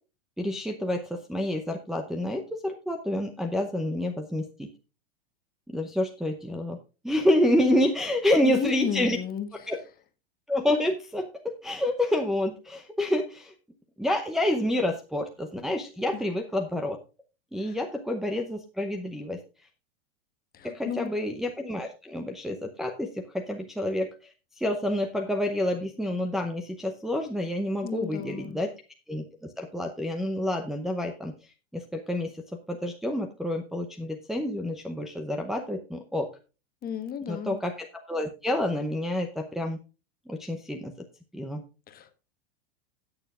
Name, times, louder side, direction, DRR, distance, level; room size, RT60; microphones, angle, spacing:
voice 1, 0.4-4.7 5.7-6.8 7.0-9.2 9.7-9.8 10.5-13.5 14.0-17.0 17.5-19.4 20.6-24.1 24.6-28.7 29.1-29.2 29.6-31.3 31.7-32.3 32.7-36.3 37.3-39.8 40.3-40.9 41.3-41.6, left 1 dB, ahead, 0.7 m, -28 dB
voice 2, 8.4-9.5 16.1-16.2 17.6-17.8 20.5-21.1 27.8-28.6 36.8-37.6 41.9-42.2, left 8 dB, 30° left, 1.3 m, -33 dB
17.5 x 7.0 x 2.4 m
supercardioid pair, 125°, 32 cm